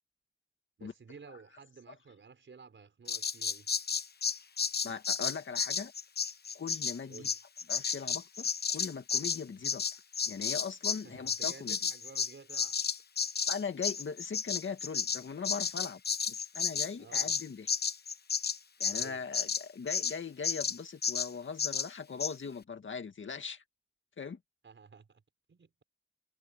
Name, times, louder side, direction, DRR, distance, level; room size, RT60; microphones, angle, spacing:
voice 1, 0.8-3.7 7.1-7.3 11.0-12.8 17.0-17.4 18.9-19.3 24.6-25.2 25.5-25.8, right 5 dB, 70° right, 5.1 m, -53 dB
Bird vocalization bird call bird song, 3.1-11.0 11.3-20.2 20.4-20.8 21.0-21.3 21.6-21.9 22.2-22.3, left 6 dB, 50° left, 0.8 m, -32 dB
voice 2, 4.8-5.9 6.5-7.3 7.7-9.8 10.3-11.8 13.5-16.0 16.3-17.7 18.8-23.6 24.2-24.4, left 5 dB, 70° left, 2.0 m, -40 dB
wide cardioid pair, 115°, 20 cm